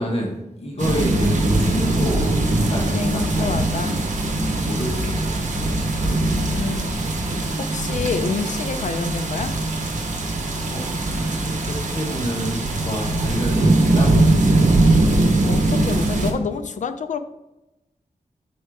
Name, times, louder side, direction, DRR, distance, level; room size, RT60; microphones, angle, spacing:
voice 1, 0.0-3.5 4.5-5.7 6.0-6.6 10.7-10.8 11.1-14.8, equal, 45° left, -2 dB, 1.5 m, -29 dB
sound 1, 0.8-16.3, right 2 dB, 65° right, 1.0 m, -21 dB
voice 2, 2.9-4.0 6.1-6.9 7.7-9.5 15.5-17.2, left 5 dB, 65° left, 9 dB, 0.5 m, -28 dB
6.2 x 4.3 x 3.5 m, 0.94 s
wide cardioid pair, 115°, 14 cm